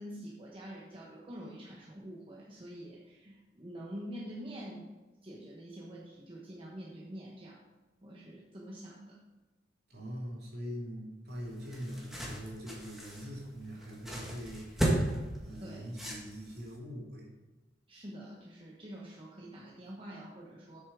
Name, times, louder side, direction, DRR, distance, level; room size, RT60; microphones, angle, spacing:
voice 1, 0.0-4.9 5.2-7.6 8.0-9.2 15.6-15.9 17.9-20.8, equal, 30° right, -4 dB, 1.2 m, -46 dB
voice 2, 9.9-15.1 15.4-17.3, equal, 60° right, -4 dB, 2.9 m, -43 dB
sound 1, 11.3-16.7, right 1 dB, ahead, 1.7 m, -36 dB
8.4 x 6.5 x 5.0 m, 1.1 s
head